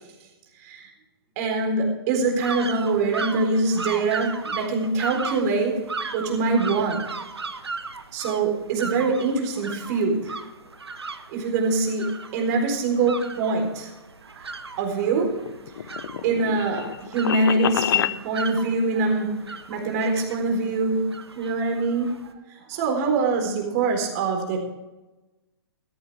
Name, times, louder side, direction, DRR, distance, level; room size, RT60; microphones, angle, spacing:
voice 1, 1.4-5.8 6.1-7.1 8.1-10.4 11.3-13.9 14.3-15.4 16.2-21.0 21.4-22.3 22.7-24.6, right 3 dB, 40° right, 2 dB, 4.1 m, -24 dB
sound 1, 2.4-22.3, right 4 dB, 85° right, 1.3 m, -37 dB
sound 2, 15.1-18.2, left 10 dB, 60° left, 0.7 m, -27 dB
14.5 x 14.0 x 3.6 m, 1.1 s
figure-of-eight pair, 125°, 13 cm